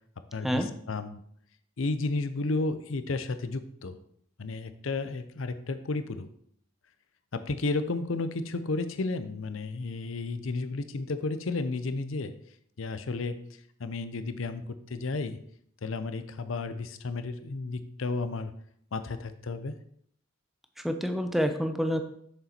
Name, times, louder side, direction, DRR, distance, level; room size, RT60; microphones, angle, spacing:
voice 1, 0.3-1.2 1.8-4.0 4.4-6.3 7.3-12.3 12.8-13.4 13.8-15.4 15.8-18.5 18.9-19.8, left 3 dB, 75° left, 11 dB, 0.6 m, -32 dB
voice 2, 20.8-22.0, equal, ahead, 7 dB, 0.7 m, -28 dB
6.8 x 6.6 x 4.4 m, 0.66 s
head